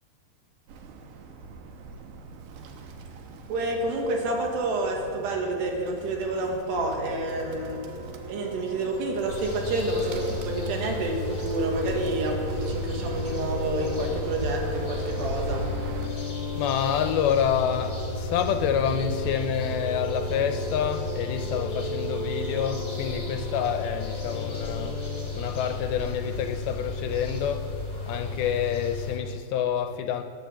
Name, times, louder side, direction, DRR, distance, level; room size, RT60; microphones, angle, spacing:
Bird, 0.7-16.1, right 3 dB, 70° right, 2.1 m, -40 dB
voice 1, 3.5-7.8 8.3-15.7, right 2 dB, 90° right, 3.8 m, -29 dB
sound 1, 6.7-25.3, equal, 25° right, 1.7 m, -36 dB
sound 2, 9.3-29.2, left 3 dB, 20° left, 2.0 m, -34 dB
voice 2, 16.2-25.1 25.3-27.7 28.1-30.2, left 8 dB, 80° left, 2.4 m, -28 dB
19.0 x 6.6 x 7.2 m
omnidirectional pair, 4.7 m